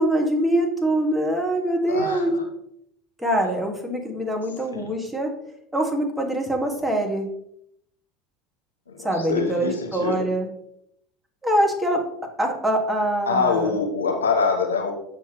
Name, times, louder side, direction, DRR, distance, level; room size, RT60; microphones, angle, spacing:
voice 1, 0.0-2.4 3.2-5.3 5.7-7.3 9.0-10.5 11.4-12.0 12.4-13.7, right 1 dB, 10° right, 1 dB, 1.8 m, -23 dB
voice 2, 1.9-2.4 4.7-4.9 8.9-10.3 13.3-14.9, left 5 dB, 90° left, 3 dB, 1.0 m, -25 dB
6.9 x 6.0 x 3.0 m, 0.73 s
hypercardioid pair, 75°, 0 cm